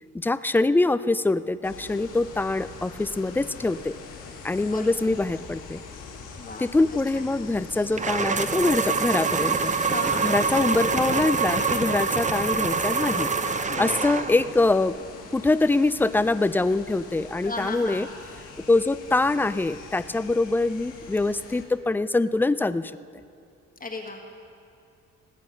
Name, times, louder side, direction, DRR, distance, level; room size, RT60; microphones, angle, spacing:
voice 1, 0.1-4.0 4.4-5.8 6.6-9.7 10.2-13.3 13.8-15.0 15.3-18.1 18.7-22.9, left 2 dB, 5° left, 15 dB, 0.3 m, -24 dB
sound 1, 1.6-21.6, left 5 dB, 85° left, 2.3 m, -42 dB
voice 2, 4.7-5.1 6.4-6.7 9.8-10.4 13.7-14.3 17.4-18.1 23.8-24.2, left 3 dB, 30° left, 1 dB, 1.5 m, -35 dB
sound 2, 8.0-14.5, right 5 dB, 25° right, 0.7 m, -25 dB
18.5 x 8.4 x 6.4 m, 2.5 s
cardioid pair, 90°, 30 cm